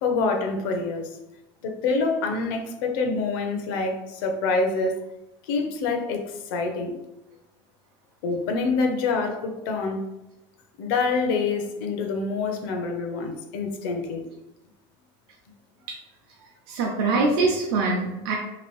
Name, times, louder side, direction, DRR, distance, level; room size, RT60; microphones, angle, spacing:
voice 1, 0.0-1.2 1.6-5.0 5.5-7.0 8.2-10.0 10.8-14.2, left 4 dB, 80° left, 4 dB, 0.6 m, -26 dB
voice 2, 16.7-18.3, right 3 dB, 80° right, -1 dB, 0.6 m, -23 dB
2.9 x 2.5 x 3.0 m, 0.95 s
cardioid pair, 155°, 12 cm